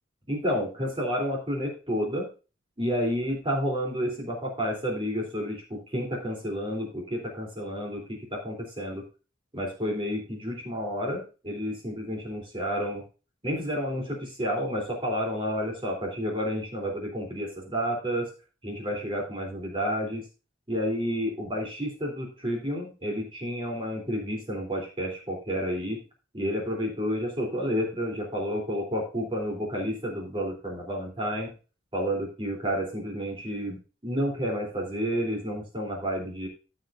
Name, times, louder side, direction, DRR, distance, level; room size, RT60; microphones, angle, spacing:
voice 1, 0.3-2.3 2.8-9.0 9.5-13.0 13.4-18.3 18.6-20.3 20.7-26.0 26.3-31.5 31.9-36.5, equal, 30° right, -1 dB, 3.3 m, -30 dB
15.0 x 6.5 x 2.6 m, 0.33 s
head